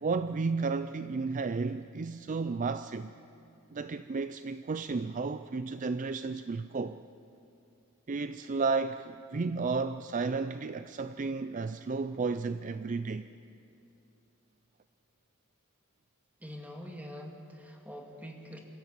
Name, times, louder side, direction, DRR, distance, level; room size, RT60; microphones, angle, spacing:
voice 1, 0.0-3.1 3.7-7.0 8.1-13.3, right 4 dB, 35° right, 0.4 m, -33 dB
voice 2, 16.4-18.6, equal, 5° right, 2.2 m, -44 dB
28.0 x 13.5 x 8.7 m
head